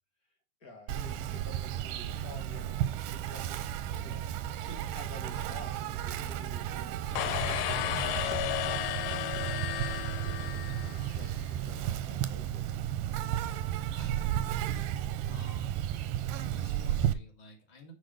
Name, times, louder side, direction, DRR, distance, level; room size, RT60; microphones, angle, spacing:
voice 1, 0.6-3.6 4.0-12.9, left 1 dB, 30° left, 3 dB, 1.8 m, -51 dB
Insect, 0.9-17.1, right 11 dB, 80° right, 2.1 m, -33 dB
sound 1, 7.2-11.4, left 13 dB, 90° left, 2.5 m, -33 dB
voice 2, 13.9-14.7 15.2-15.8 16.3-17.9, left 1 dB, 50° left, 0 dB, 0.4 m, -51 dB
6.2 x 4.9 x 6.3 m, 0.32 s
omnidirectional pair, 4.3 m